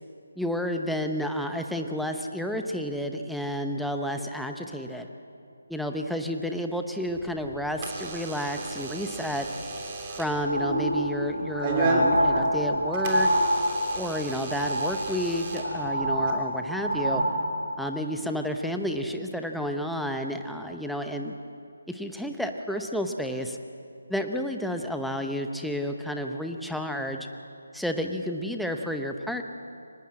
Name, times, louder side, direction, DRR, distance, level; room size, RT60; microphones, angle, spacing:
voice 1, 0.4-5.1 5.7-9.5 10.2-13.3 13.9-17.2 17.8-21.3 21.9-23.6 24.1-27.3 27.7-29.4, equal, ahead, 4 dB, 0.9 m, -31 dB
Door / Alarm, 7.1-16.3, right 2 dB, 25° right, 3.2 m, -33 dB
sound 1, 10.4-14.0 14.3-15.1 15.4-17.8 18.4-18.5, equal, 80° right, 3.4 m, -27 dB
24.0 x 20.0 x 7.6 m, 2.6 s
figure-of-eight pair, 150°, 0 cm